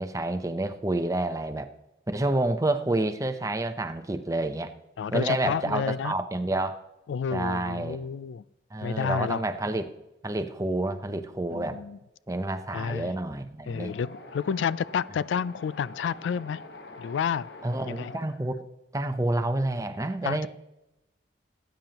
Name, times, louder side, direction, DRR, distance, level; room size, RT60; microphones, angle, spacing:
voice 1, 0.0-1.7 2.1-4.7 5.1-6.8 7.3-8.0 8.7-9.9 10.2-11.8 12.3-13.9 17.6-18.6 18.9-20.5, right 2 dB, 20° right, 0.6 m, -29 dB
voice 2, 5.0-6.1 7.1-8.4 8.8-9.4 11.5-12.0 12.7-13.1 13.7-16.6 17.0-17.5 17.9-18.2 20.2-20.5, left 7 dB, 85° left, 0.3 m, -30 dB
Wind, 13.7-18.2, left 2 dB, 65° left, 1.2 m, -45 dB
18.0 x 9.1 x 2.9 m
head